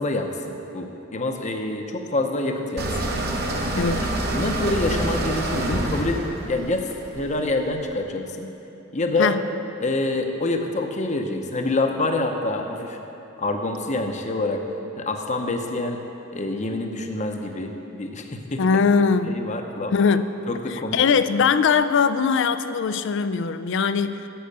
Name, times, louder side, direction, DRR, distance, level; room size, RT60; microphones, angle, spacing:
voice 1, 0.0-3.1 3.8-8.5 8.9-9.3 9.8-13.0 13.4-14.6 15.0-16.0 16.3-18.6 19.3-19.9 20.5-21.2, left 2 dB, 35° left, 4 dB, 0.8 m, -26 dB
sound 1, 2.8-7.7, right 1 dB, 50° right, 1.2 m, -27 dB
voice 2, 3.7-4.2 9.2-9.4 18.6-19.4 19.9-20.2 20.7-24.3, left 5 dB, 60° left, 12 dB, 0.4 m, -21 dB
10.0 x 8.0 x 6.7 m, 2.9 s
head